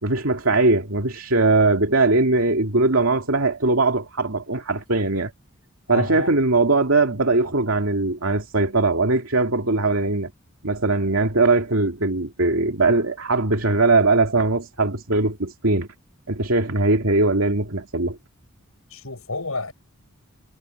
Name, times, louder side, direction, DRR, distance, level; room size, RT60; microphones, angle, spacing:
voice 1, 0.0-5.3 5.9-10.3 10.6-15.9 16.3-18.2, right 3 dB, 70° right, 2.7 m, -20 dB
voice 2, 5.9-6.3 18.9-19.7, left 3 dB, 80° left, 7.5 m, -30 dB
head